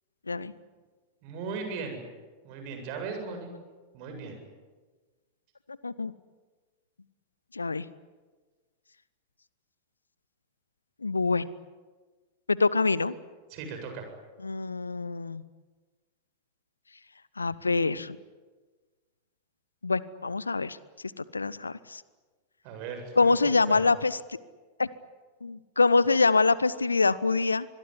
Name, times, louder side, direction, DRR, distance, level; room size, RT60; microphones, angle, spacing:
voice 1, 1.2-2.0 2.4-3.5 3.9-4.4 13.5-14.1 22.6-23.3 23.7-23.9, right 5 dB, 45° right, 5 dB, 7.8 m, -37 dB
voice 2, 7.5-7.8 11.0-11.5 12.5-13.1 14.4-15.4 17.4-18.2 19.8-20.8 21.2-22.0 23.2-24.2 24.8-24.9 25.4-27.7, left 3 dB, 80° left, 19 dB, 0.9 m, -25 dB
25.0 x 22.0 x 9.9 m, 1.3 s
figure-of-eight pair, 90°, 0 cm